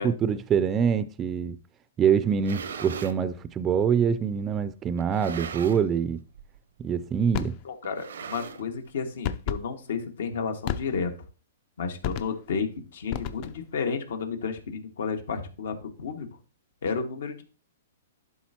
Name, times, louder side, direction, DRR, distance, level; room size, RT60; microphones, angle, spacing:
voice 1, 0.0-1.6 2.0-6.2 6.8-7.6, right 7 dB, 20° right, 0.4 m, -25 dB
sound 1, 2.2-3.2 4.0-4.1 5.0-6.0 6.3-6.6 6.8-6.9 7.8-8.9, right 6 dB, 80° right, 0.7 m, -39 dB
sound 2, 7.3-7.6 9.2-9.7 10.7-11.2 12.0-12.5 13.1-13.7, left 9 dB, 40° left, 0.6 m, -32 dB
voice 2, 7.6-11.1 11.8-16.3 16.8-17.4, left 5 dB, 70° left, 1.8 m, -32 dB
11.5 x 4.0 x 2.9 m
hypercardioid pair, 135°, 0 cm